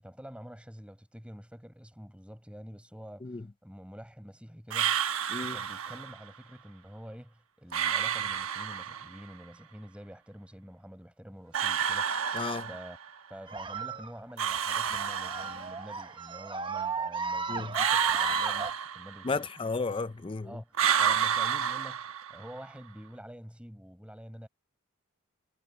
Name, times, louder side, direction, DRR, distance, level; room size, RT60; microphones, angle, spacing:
voice 1, 0.0-5.1 5.4-12.3 12.7-13.0 13.3-19.5 20.4-24.5, equal, 5° right, 4.8 m, -47 dB
sound 1, 4.7-6.2 7.7-9.2 11.5-13.1 14.4-15.9 17.7-19.5 20.7-22.6, right 8 dB, 75° right, 1.1 m, -30 dB
voice 2, 12.3-12.7 17.5-17.7 19.2-20.6, left 4 dB, 25° left, 0.5 m, -33 dB
sound 2, 13.5-18.7, right 4 dB, 20° right, 1.1 m, -35 dB
head